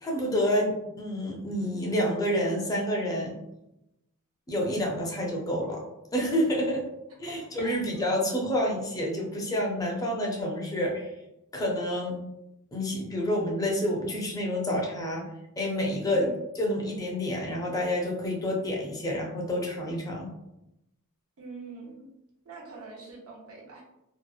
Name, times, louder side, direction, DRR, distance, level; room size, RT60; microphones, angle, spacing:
voice 1, 0.0-3.4 4.5-5.8 6.1-6.9 7.2-11.1 11.5-12.2 12.7-15.3 15.6-16.3 16.6-20.3, equal, 15° left, -2 dB, 0.5 m, -28 dB
voice 2, 7.1-8.1 16.1-16.4 21.4-22.1 22.4-23.8, right 3 dB, 70° right, -2 dB, 0.7 m, -44 dB
2.7 x 2.0 x 2.3 m, 0.89 s
head